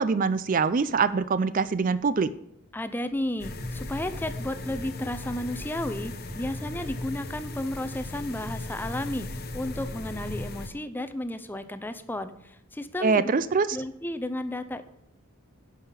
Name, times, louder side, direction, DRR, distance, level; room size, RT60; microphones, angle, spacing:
voice 1, 0.0-2.3 13.0-13.8, right 5 dB, 40° right, 14 dB, 0.4 m, -24 dB
voice 2, 2.7-13.3 13.7-14.8, left 1 dB, 10° left, 10 dB, 0.5 m, -33 dB
sound 1, 3.4-10.7, left 2 dB, 45° left, 1.1 m, -37 dB
11.0 x 5.6 x 7.3 m, 0.77 s
head